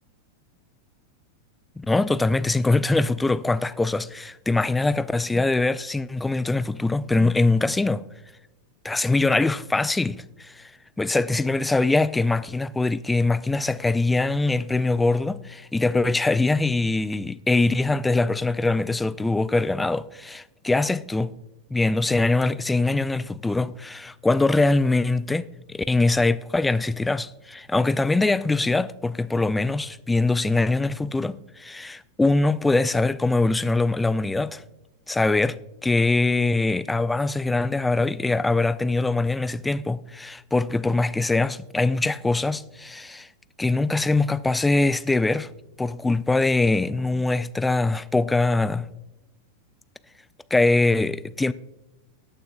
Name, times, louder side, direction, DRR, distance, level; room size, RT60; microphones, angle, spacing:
voice 1, 1.8-8.1 8.8-10.7 11.0-21.3 21.7-34.6 35.1-43.3 43.6-45.5 45.8-48.9 50.5-51.5, left 2 dB, 10° left, 0.4 m, -23 dB
20.0 x 9.1 x 2.5 m
figure-of-eight pair, 90°, 0 cm